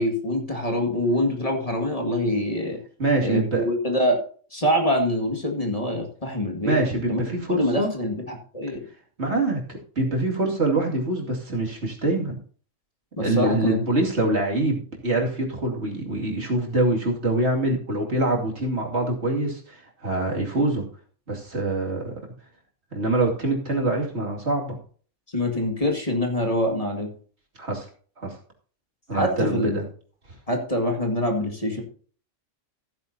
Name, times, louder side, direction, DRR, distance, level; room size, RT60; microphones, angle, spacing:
voice 1, 0.0-2.8 3.2-4.2 4.5-6.8 7.1-7.2 7.5-8.8 13.2-13.8 25.3-27.1 29.1-29.8 30.5-31.8, left 1 dB, 30° left, 2 dB, 2.1 m, -25 dB
voice 2, 3.0-3.7 6.6-7.9 9.2-12.4 13.2-20.8 21.3-22.1 22.9-24.8 27.6-27.9 28.2-28.3 29.1-29.8, right 2 dB, 60° right, 0 dB, 2.8 m, -25 dB
15.0 x 9.1 x 2.8 m, 0.42 s
omnidirectional pair, 1.3 m